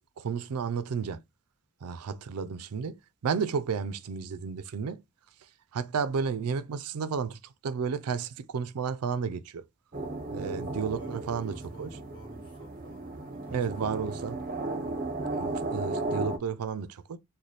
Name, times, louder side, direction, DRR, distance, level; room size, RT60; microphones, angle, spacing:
voice 1, 0.2-1.2 1.8-3.0 3.2-5.0 5.7-9.6 10.3-11.9 13.5-14.4 15.3-17.2, right 6 dB, 80° right, 0.4 m, -32 dB
sound 1, 9.9-16.4, right 2 dB, 40° right, 0.7 m, -35 dB
voice 2, 10.5-14.0, right 1 dB, 25° left, 1.7 m, -49 dB
4.0 x 2.1 x 3.2 m
head